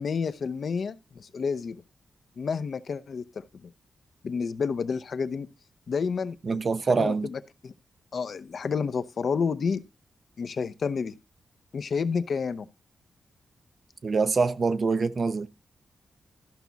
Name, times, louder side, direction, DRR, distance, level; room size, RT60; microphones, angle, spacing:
voice 1, 0.0-1.8 2.4-3.4 4.2-5.5 5.9-6.6 6.9-7.7 8.1-9.8 10.4-11.1 11.7-12.7, left 5 dB, 60° left, 0.7 m, -30 dB
voice 2, 6.4-7.3 14.0-15.5, right 4 dB, 50° right, 0.7 m, -25 dB
13.5 x 6.0 x 4.0 m
wide cardioid pair, 100°, 0 cm